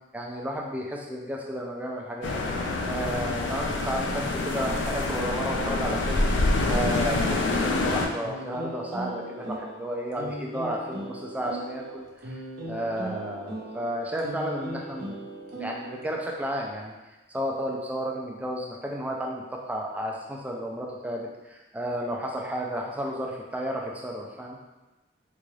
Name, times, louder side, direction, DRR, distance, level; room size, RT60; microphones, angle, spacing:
voice 1, 0.1-2.5 2.9-15.2 15.5-16.9 17.3-24.6, equal, 5° right, -1 dB, 0.3 m, -32 dB
sound 1, 2.2-8.1, left 2 dB, 70° left, 0.4 m, -26 dB
sound 2, 8.2-16.3, right 2 dB, 50° right, 0.6 m, -38 dB
3.8 x 2.3 x 3.2 m, 1.1 s
head